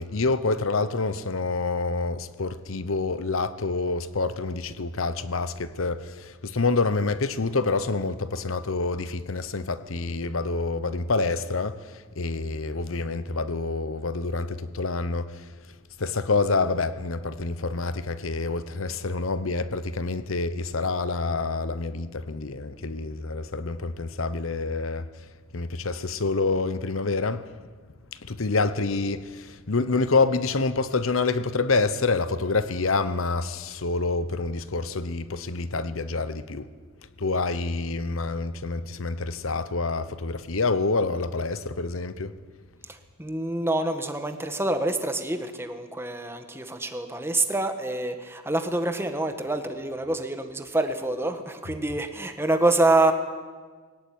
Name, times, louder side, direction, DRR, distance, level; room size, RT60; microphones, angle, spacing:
voice 1, 0.0-15.5 16.0-25.1 25.5-27.5 28.2-36.7 37.2-42.3, left 3 dB, 85° left, 1.0 m, -27 dB
voice 2, 42.9-53.1, right 2 dB, 10° right, 1.6 m, -26 dB
21.5 x 18.0 x 9.5 m
head